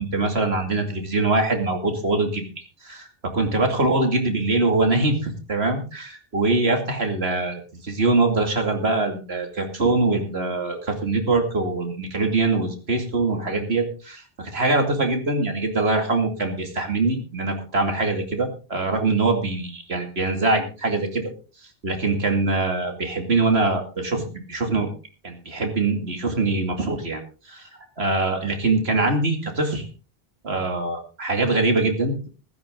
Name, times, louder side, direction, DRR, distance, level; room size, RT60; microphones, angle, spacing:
voice 1, 0.0-2.4 2.8-21.3 21.8-24.9 25.2-27.2 27.5-27.7 28.0-29.9 30.4-32.3, right 3 dB, 75° right, 5 dB, 2.8 m, -23 dB
15.0 x 13.5 x 3.8 m, 0.34 s
omnidirectional pair, 1.1 m